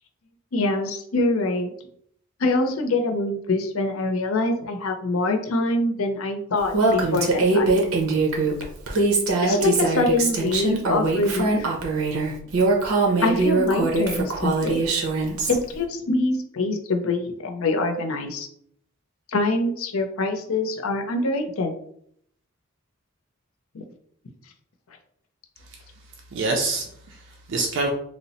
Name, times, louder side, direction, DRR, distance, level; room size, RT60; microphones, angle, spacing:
voice 1, 0.5-1.7 2.4-7.8 9.4-11.7 13.2-14.9 15.5-18.5 19.3-21.7 23.7-23.8, left 2 dB, 80° left, 5 dB, 0.6 m, -24 dB
Female speech woman speaking, 6.7-15.6, right 3 dB, 85° right, 0.7 m, -22 dB
voice 2, 26.3-27.9, right 3 dB, 55° right, 1 dB, 0.4 m, -27 dB
3.1 x 2.0 x 4.0 m, 0.66 s
head